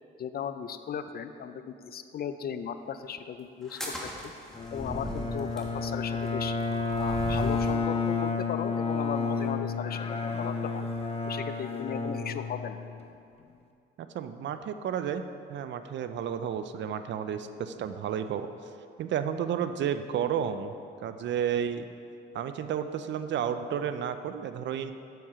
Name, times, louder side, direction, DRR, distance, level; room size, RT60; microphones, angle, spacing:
voice 1, 0.2-4.3 4.7-6.6 7.0-10.9 11.2-12.8, left 8 dB, 50° left, 10 dB, 0.5 m, -36 dB
sound 1, 3.6-7.8, right 1 dB, ahead, 1.6 m, -39 dB
Bowed string instrument, 4.5-13.0, left 4 dB, 30° left, 0.8 m, -31 dB
voice 2, 14.0-15.2 15.5-18.5 19.0-20.7 21.0-21.9 22.3-24.9, right 8 dB, 65° right, 10 dB, 0.5 m, -31 dB
7.8 x 7.2 x 4.9 m, 2.5 s
cardioid pair, 90°, 20 cm